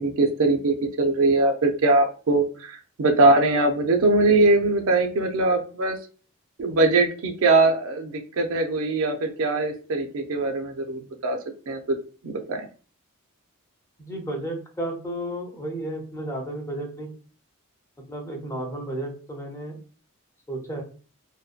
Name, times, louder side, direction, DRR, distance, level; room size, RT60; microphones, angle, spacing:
voice 1, 0.0-6.0 6.6-11.4 11.7-12.0 12.2-12.7, right 2 dB, 60° right, 5 dB, 0.4 m, -21 dB
voice 2, 14.0-17.1 18.1-19.8 20.5-20.8, right 1 dB, 15° left, 1 dB, 0.5 m, -32 dB
2.6 x 2.2 x 2.3 m, 0.39 s
head